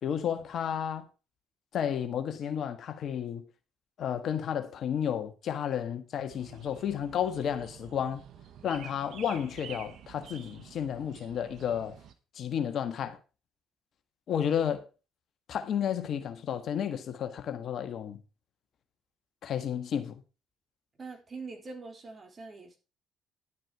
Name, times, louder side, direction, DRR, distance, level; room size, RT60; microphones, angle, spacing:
voice 1, 0.0-1.0 1.7-3.4 4.0-8.2 8.6-12.0 12.3-13.2 14.3-14.9 15.5-18.2 19.4-20.2, left 8 dB, 60° left, 1.5 m, -32 dB
sound 1, 6.3-12.1, right 9 dB, 65° right, 1.3 m, -49 dB
voice 2, 21.0-22.8, right 4 dB, 35° right, 3.7 m, -43 dB
11.0 x 7.6 x 4.8 m
hypercardioid pair, 60°, 0 cm